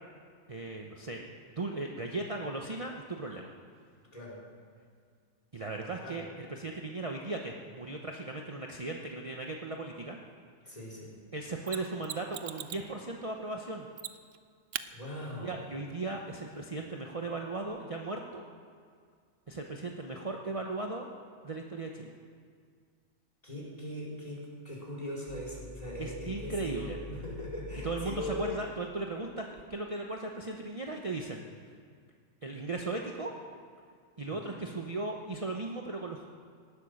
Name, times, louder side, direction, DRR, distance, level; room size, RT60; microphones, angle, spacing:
voice 1, 0.5-1.3 1.5-3.5 5.5-10.2 11.3-13.9 15.4-18.4 19.5-21.1 21.4-22.1 26.0-27.0 27.8-31.4 32.4-33.3 34.2-36.3, right 2 dB, 30° right, 1 dB, 0.9 m, -37 dB
voice 2, 4.1-4.4 6.0-6.3 10.6-11.2 14.9-15.6 23.4-28.5 34.3-34.6, equal, 30° left, -4 dB, 4.1 m, -40 dB
Mechanisms, 11.7-12.9 14.0-14.4 14.7-14.9 17.6-17.7, right 10 dB, 75° right, 1.0 m, -40 dB
sound 1, 25.3-29.8, left 5 dB, 5° right, 0.5 m, -46 dB
18.5 x 11.5 x 6.5 m, 2.1 s
omnidirectional pair, 1.3 m